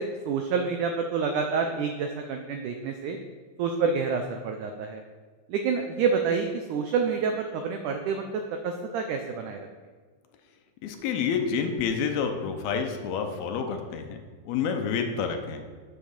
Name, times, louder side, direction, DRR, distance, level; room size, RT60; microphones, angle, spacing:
voice 1, 0.0-3.2 3.6-5.0 5.5-9.6, right 5 dB, 85° right, 5 dB, 1.7 m, -28 dB
voice 2, 10.8-14.2 14.5-15.6, left 6 dB, 80° left, 5 dB, 2.8 m, -28 dB
7.6 x 7.2 x 6.6 m, 1.5 s
omnidirectional pair, 4.3 m